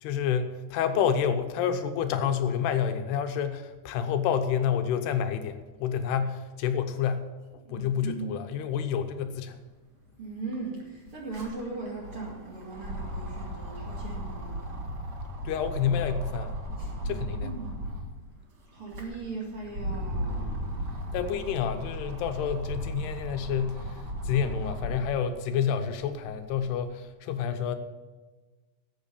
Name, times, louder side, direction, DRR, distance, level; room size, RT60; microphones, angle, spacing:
voice 1, 0.0-7.2 7.5-9.6 15.4-16.6 17.1-17.5 21.1-27.8, left 8 dB, 85° left, 8 dB, 2.8 m, -29 dB
voice 2, 7.6-8.3 10.2-14.8 16.8-17.8 18.7-20.6, right 3 dB, 40° right, -3 dB, 2.3 m, -39 dB
sound 1, 10.0-10.1 10.4-18.2 18.7-25.2 25.7-26.8, equal, 75° right, 0.9 m, -36 dB
12.0 x 8.1 x 6.9 m, 1.3 s
omnidirectional pair, 4.7 m